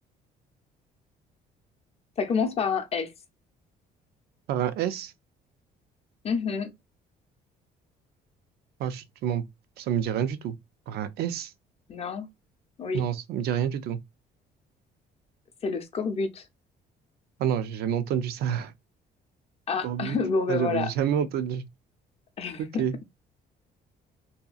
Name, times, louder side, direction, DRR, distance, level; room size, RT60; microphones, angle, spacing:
voice 1, 2.2-3.1 6.2-6.7 11.9-12.3 12.8-13.1 15.6-16.5 19.7-20.9 22.4-22.8, left 5 dB, 35° left, 0.6 m, -28 dB
voice 2, 4.5-5.1 8.8-9.4 9.8-10.5 10.9-11.5 12.9-14.0 17.4-18.7 19.8-20.2 20.5-21.7 22.6-22.9, right 9 dB, 70° right, 0.4 m, -28 dB
2.7 x 2.3 x 2.3 m
cardioid pair, 110°, 17 cm